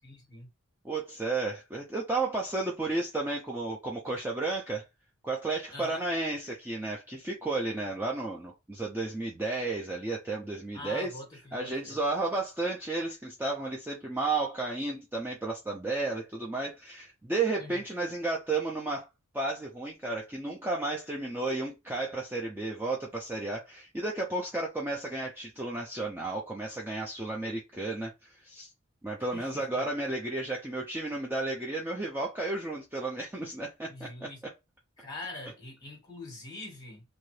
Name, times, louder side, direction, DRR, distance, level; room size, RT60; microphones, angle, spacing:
voice 1, 0.0-0.5 5.7-6.0 10.7-12.0 17.6-17.8 29.3-29.6 33.9-34.4 35.0-37.0, left 2 dB, 20° left, 1.4 m, -44 dB
voice 2, 0.8-4.8 5.2-11.1 11.5-19.1 19.3-28.7 29.0-34.3, right 2 dB, 10° right, 0.4 m, -33 dB
2.7 x 2.5 x 3.1 m
head